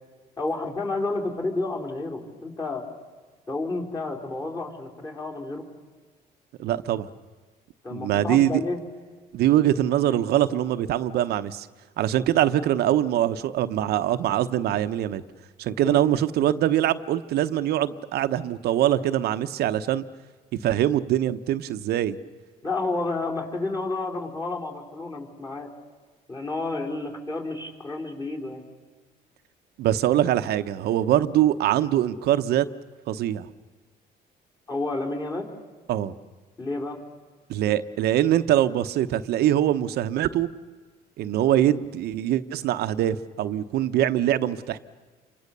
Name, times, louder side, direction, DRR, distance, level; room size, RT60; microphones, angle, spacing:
voice 1, 0.4-2.8 3.5-5.6 7.8-8.8 15.8-16.0 22.6-25.7 26.3-28.6 34.7-35.5 36.6-37.0, left 2 dB, 20° left, -1 dB, 4.3 m, -30 dB
voice 2, 6.6-7.1 7.9-8.6 9.3-11.7 12.0-15.2 15.6-20.0 20.6-22.2 29.8-32.7 33.1-33.5 35.9-36.1 37.5-40.5 41.2-44.8, right 12 dB, 75° right, 11 dB, 1.0 m, -23 dB
28.5 x 24.5 x 6.8 m, 1.4 s
cardioid pair, 110°, 17 cm